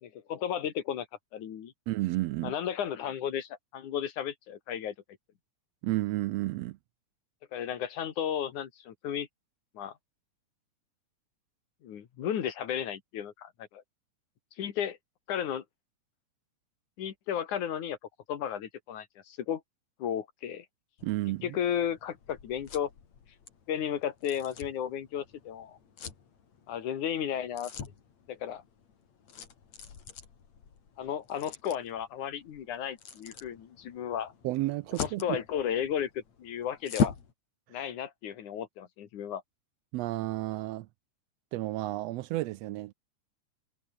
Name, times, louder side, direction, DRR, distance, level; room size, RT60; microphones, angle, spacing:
voice 1, 0.0-1.1 1.3-1.7 2.4-4.9 7.5-9.3 9.7-9.9 11.8-13.8 14.6-15.0 15.3-15.6 17.0-18.0 18.3-19.6 20.0-20.7 21.4-22.9 23.7-25.8 26.7-27.7 28.3-28.6 31.0-34.3 35.0-37.2 37.7-39.4, left 9 dB, 85° left, 3.5 m, -34 dB
voice 2, 1.9-2.5 5.8-6.8 21.0-21.6 34.4-35.4 39.9-40.9 41.5-42.9, right 17 dB, 80° right, 1.5 m, -32 dB
sound 1, 21.0-37.3, left 6 dB, 65° left, 4.2 m, -41 dB
omnidirectional pair, 3.4 m